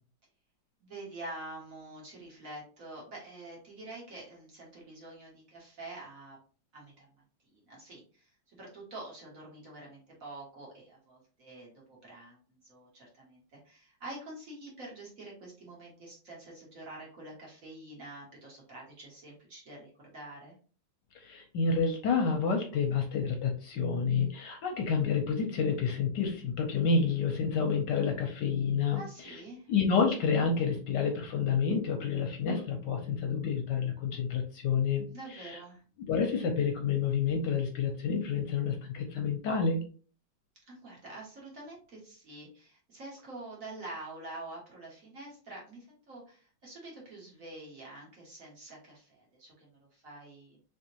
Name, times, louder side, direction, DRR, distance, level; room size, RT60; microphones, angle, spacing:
voice 1, 0.8-6.4 6.7-7.1 7.4-20.5 28.9-29.7 35.1-35.8 40.7-50.6, right 2 dB, 45° right, -3 dB, 1.4 m, -47 dB
voice 2, 21.1-29.4 29.7-35.0 35.3-35.6 36.1-39.8, left 5 dB, 70° left, 3 dB, 1.1 m, -29 dB
3.5 x 3.5 x 2.8 m, 0.41 s
omnidirectional pair, 2.2 m